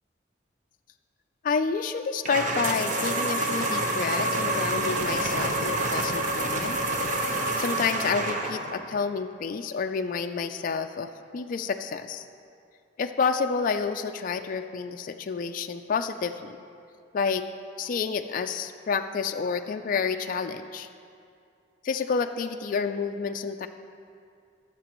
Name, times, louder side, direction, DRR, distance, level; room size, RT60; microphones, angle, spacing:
voice 1, 1.4-6.8 7.6-12.3 13.0-16.6 17.1-17.4 17.8-20.9 21.8-23.7, left 5 dB, 45° left, 7 dB, 0.3 m, -29 dB
sound 1, 2.2-8.8, right 2 dB, 45° right, 0.9 m, -27 dB
17.0 x 7.4 x 3.0 m, 2.4 s
head